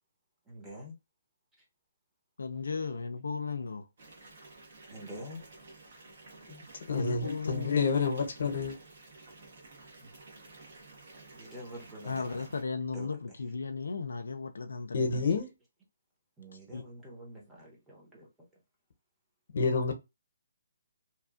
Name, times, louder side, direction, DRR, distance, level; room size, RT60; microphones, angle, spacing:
voice 1, 0.4-1.0 2.5-3.5 4.9-5.4 6.5-6.6 10.0-10.1 11.3-12.5 12.9-13.4 16.4-18.5, equal, 5° right, 0.9 m, -47 dB
voice 2, 2.4-3.9 6.9-7.8 12.1-15.2 16.7-16.8, left 4 dB, 85° left, 0.4 m, -35 dB
Water tap faucet / Bathtub (filling or washing) / Fill (with liquid), 4.0-12.6, right 3 dB, 55° right, 1.2 m, -53 dB
voice 3, 6.9-8.8 14.9-15.5 19.5-19.9, left 4 dB, 60° left, 0.8 m, -28 dB
2.8 x 2.3 x 2.4 m
hypercardioid pair, 160°, 0 cm